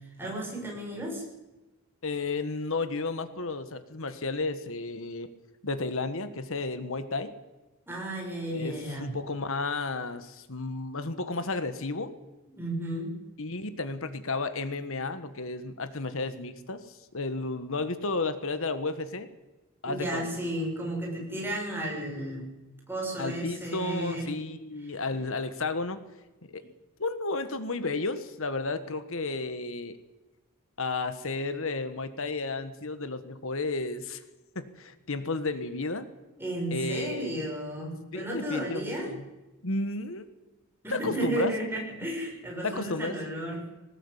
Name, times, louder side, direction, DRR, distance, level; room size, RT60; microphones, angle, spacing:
voice 1, 0.2-1.2 7.9-9.1 12.6-13.2 19.9-22.5 22.9-24.3 24.8-25.0 36.4-39.1 40.8-43.6, right 1 dB, 10° right, -1 dB, 6.8 m, -33 dB
voice 2, 2.0-5.3 5.6-7.3 8.5-12.1 13.4-16.8 17.1-19.3 19.8-20.3 23.2-26.0 26.4-26.6 27.0-30.0 30.8-34.2 34.5-36.1 36.7-37.4 38.1-39.2 39.6-40.2 40.9-41.5 42.6-43.2, left 3 dB, 65° left, 10 dB, 1.5 m, -32 dB
21.0 x 19.0 x 8.3 m, 1.1 s
head